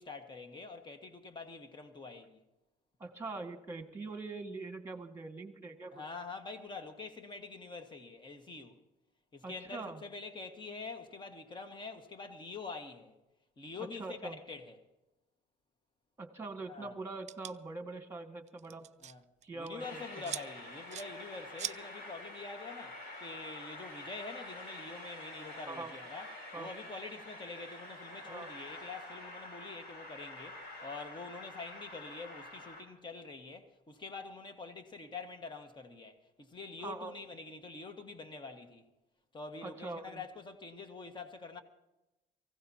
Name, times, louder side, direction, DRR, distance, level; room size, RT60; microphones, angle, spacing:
voice 1, 0.0-2.4 5.9-8.8 9.3-13.2 13.6-14.8 16.7-16.9 19.0-19.2 19.5-38.8 39.3-41.6, left 4 dB, 25° left, 1.6 m, -46 dB
voice 2, 3.0-6.0 9.4-10.0 14.0-14.4 16.2-18.9 19.4-20.0 25.7-25.9 26.5-26.7 28.2-28.5 36.8-37.1 39.6-40.2, right 3 dB, 15° right, 1.8 m, -43 dB
sound 1, 17.3-17.5 18.5-19.1 19.4-19.7 20.2-20.4 20.9-21.1 21.6-21.8, right 11 dB, 45° right, 0.4 m, -40 dB
Train, 19.8-32.8, left 1 dB, 65° left, 4.2 m, -48 dB
23.5 x 16.0 x 2.8 m
cardioid pair, 110°, 17 cm